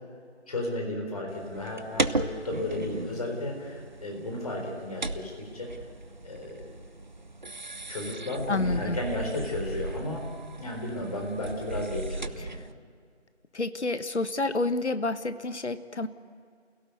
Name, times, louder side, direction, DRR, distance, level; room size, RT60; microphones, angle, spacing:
voice 1, 0.5-5.7 6.2-6.7 7.9-10.3 10.5-12.6, left 1 dB, 30° left, 1 dB, 4.2 m, -34 dB
sound 1, 1.3-12.7, right 2 dB, 40° right, 0.6 m, -36 dB
voice 2, 8.5-9.0 13.5-16.1, left 3 dB, 70° left, 12 dB, 1.3 m, -29 dB
29.0 x 17.0 x 8.2 m, 2.1 s
figure-of-eight pair, 165°, 35 cm